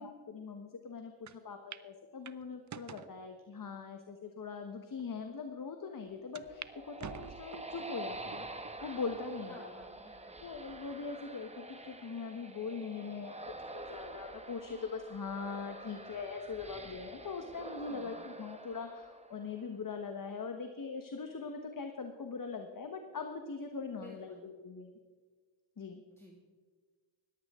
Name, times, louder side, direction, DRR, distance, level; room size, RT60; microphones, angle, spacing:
voice 1, 0.0-8.5 8.8-9.7 10.4-13.4 13.7-24.9 25.8-26.0, left 5 dB, 45° left, 5 dB, 1.3 m, -41 dB
sound 1, 1.3-1.4 1.7-1.9 2.2-3.1 3.8-3.9 4.6-4.7 5.0-5.1 6.3-6.7 7.0-7.8 8.3-8.8 9.3-9.4 10.5-11.0, right 8 dB, 40° right, 0.6 m, -47 dB
sound 2, 6.3-19.9, right 2 dB, 15° right, 1.2 m, -47 dB
voice 2, 9.5-10.4 17.9-18.2 24.0-24.4 26.1-26.4, equal, 5° left, -2 dB, 2.2 m, -55 dB
19.5 x 15.0 x 3.7 m, 1.5 s
cardioid pair, 80°, 47 cm